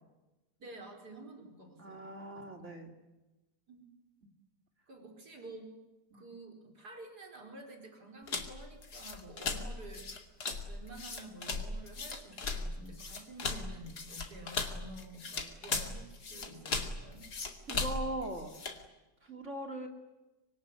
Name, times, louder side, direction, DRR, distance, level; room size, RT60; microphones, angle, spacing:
voice 1, 0.6-2.1 3.7-3.9 4.9-5.7 6.1-10.2 10.6-17.2, right 1 dB, 70° right, 3 dB, 5.3 m, -50 dB
voice 2, 1.8-2.9 4.2-4.3 6.1-6.3 17.7-18.9 19.2-19.9, right 1 dB, 45° right, 4 dB, 3.1 m, -40 dB
sound 1, 8.3-18.8, left 3 dB, 70° left, 2.9 m, -38 dB
25.5 x 22.5 x 9.8 m, 1.1 s
omnidirectional pair, 1.8 m